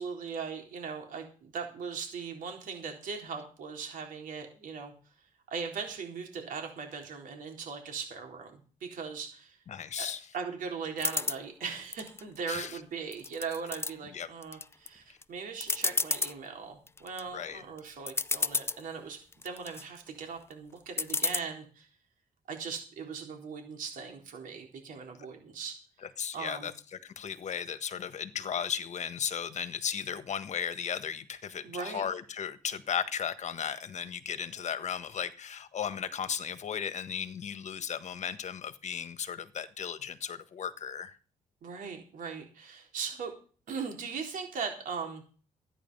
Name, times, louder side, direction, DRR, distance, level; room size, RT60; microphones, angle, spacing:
voice 1, 0.0-4.9 5.5-9.6 10.0-10.1 10.3-21.9 22.5-25.8 26.3-26.7 31.6-32.0 41.6-43.3 43.7-45.2, right 5 dB, 80° right, 3 dB, 3.8 m, -39 dB
voice 2, 9.7-10.2 12.5-12.8 14.1-14.3 17.3-17.6 26.0-41.2, left 8 dB, 60° left, 12 dB, 1.4 m, -36 dB
sound 1, 11.0-11.4 11.9-12.7 13.1-13.9 14.4-14.9 15.2-15.3 15.6-16.3 16.9-17.2 17.8-17.9 18.1-18.8 19.3-19.8 21.0-21.4, left 3 dB, 20° left, 0.5 m, -31 dB
13.5 x 10.0 x 5.5 m, 0.38 s
cardioid pair, 115°, 14 cm